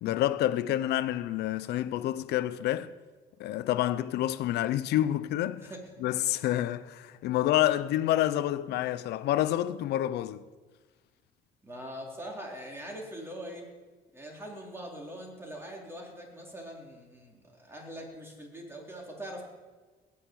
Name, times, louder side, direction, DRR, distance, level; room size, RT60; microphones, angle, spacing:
voice 1, 0.0-2.9 3.4-5.7 6.0-10.4, left 13 dB, 75° left, 0.8 m, -28 dB
voice 2, 11.6-13.6 14.1-19.5, equal, 15° right, 4.3 m, -42 dB
19.5 x 6.7 x 9.2 m
cardioid pair, 110°, 17 cm